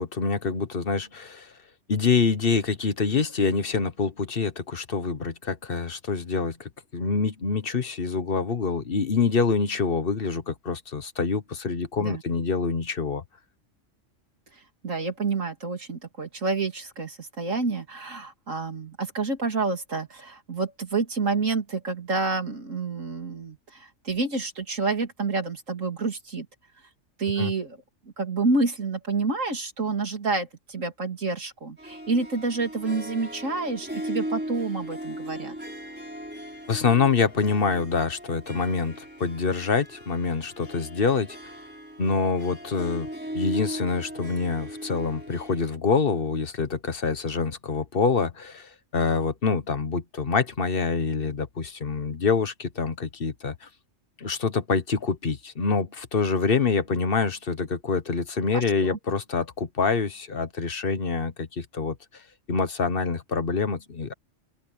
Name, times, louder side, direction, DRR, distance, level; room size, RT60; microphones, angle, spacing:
voice 1, 0.0-1.5 1.9-13.2 27.4-27.5 36.7-41.5 42.0-43.1 43.3-53.7 54.2-62.2 62.5-64.1, left 5 dB, 45° left, 1.4 m, -26 dB
voice 2, 14.8-26.5 27.2-27.8 28.2-35.5 58.5-59.0, right 3 dB, 80° right, 3.3 m, -28 dB
Harp, 31.8-45.8, equal, 10° right, 4.9 m, -38 dB
open air
omnidirectional pair, 1.3 m